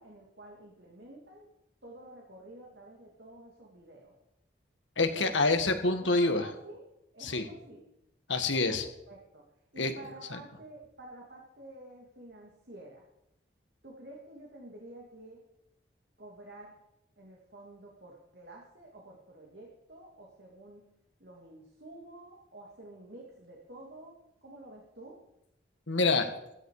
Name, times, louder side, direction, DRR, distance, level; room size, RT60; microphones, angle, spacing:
voice 1, 0.0-1.5 1.8-4.1 5.1-5.4 6.0-6.8 7.1-7.8 8.6-8.8 9.1-9.4 9.7-13.0 13.8-15.4 16.2-16.7 17.2-20.9 21.2-24.2 24.4-25.2, right 1 dB, 60° right, -2 dB, 2.7 m, -50 dB
voice 2, 5.0-6.4 7.2-7.4 8.3-8.9 9.8-9.9 10.3-10.4 25.9-26.3, left 3 dB, 80° left, 7 dB, 1.7 m, -26 dB
15.5 x 14.0 x 4.9 m, 0.86 s
head